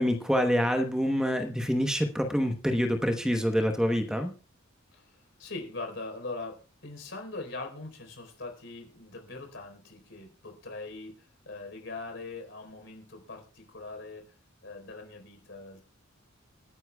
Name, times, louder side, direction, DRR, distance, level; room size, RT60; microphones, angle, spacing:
voice 1, 0.0-4.3, equal, 5° right, 5 dB, 1.0 m, -26 dB
voice 2, 4.9-14.3 14.6-15.9, left 3 dB, 65° left, 4 dB, 4.2 m, -42 dB
28.0 x 9.8 x 2.3 m, 0.35 s
head